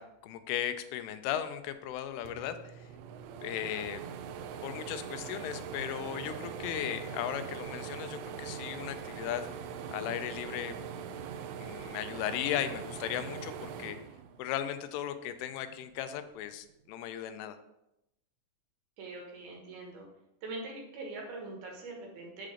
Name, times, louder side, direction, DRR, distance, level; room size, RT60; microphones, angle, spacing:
voice 1, 0.0-2.8 3.4-4.0 4.6-9.5 9.9-10.7 11.6-14.0 14.4-17.6, left 11 dB, 85° left, 10 dB, 3.1 m, -36 dB
sound 1, 1.9-2.0 2.2-14.8 15.3-16.4, right 7 dB, 85° right, 3.1 m, -42 dB
voice 2, 19.0-20.1 20.4-22.5, right 2 dB, 65° right, -1 dB, 2.6 m, -42 dB
8.5 x 3.8 x 5.0 m, 0.87 s
omnidirectional pair, 5.6 m